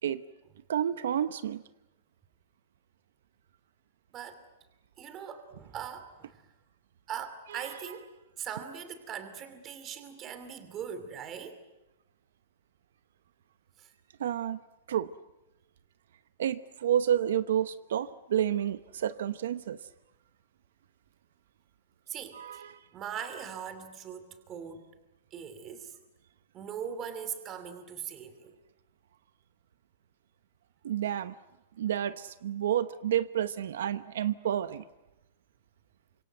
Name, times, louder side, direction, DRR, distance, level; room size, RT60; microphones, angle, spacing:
voice 1, 0.7-1.6 7.5-7.6 14.2-14.6 14.9-15.1 16.4-19.8 22.3-22.7 30.8-31.3 31.8-34.8, right 10 dB, 75° right, 13 dB, 0.9 m, -30 dB
voice 2, 5.0-6.4 7.1-11.6 13.8-13.9 22.1-22.6 22.9-24.9 25.3-26.0 26.5-28.6, right 8 dB, 20° right, 10 dB, 2.8 m, -41 dB
29.0 x 26.0 x 8.0 m, 0.98 s
supercardioid pair, 170°, 0 cm